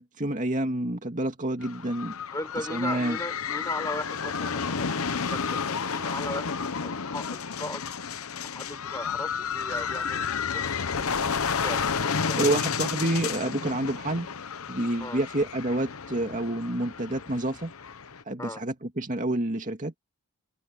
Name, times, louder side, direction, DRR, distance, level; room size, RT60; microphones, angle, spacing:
voice 1, 0.0-2.1 2.7-3.2 12.4-14.3 14.7-17.7 18.3-19.9, right 1 dB, 35° right, 2.3 m, -28 dB
sound 1, 1.6-18.2, left 6 dB, 70° left, 0.9 m, -31 dB
voice 2, 2.3-7.8 8.4-10.2 10.5-12.6 15.0-15.2 18.4-18.6, left 2 dB, 15° left, 5.9 m, -37 dB
head